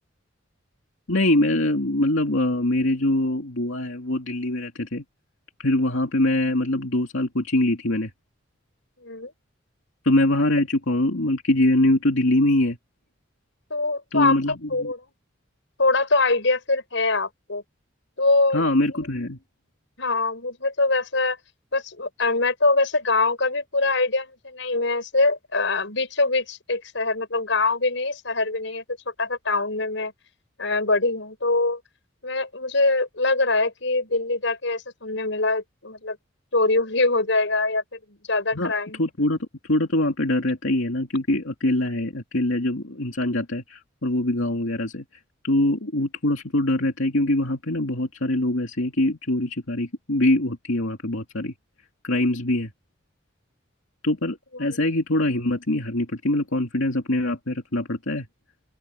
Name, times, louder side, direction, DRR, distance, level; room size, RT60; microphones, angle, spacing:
voice 1, 1.1-5.0 5.6-8.1 10.0-12.8 14.1-14.9 18.5-19.4 38.5-38.7 39.0-45.1 45.4-51.5 52.0-52.7 54.0-58.3, left 1 dB, 85° left, 2.5 m, -23 dB
voice 2, 13.7-14.4 14.7-15.0 15.8-17.6 18.2-18.6 20.0-21.4 21.7-28.8 29.2-30.1 30.6-31.8 32.2-36.2 36.5-37.8 38.1-39.0 54.5-54.8, left 3 dB, 70° left, 6.0 m, -23 dB
open air
head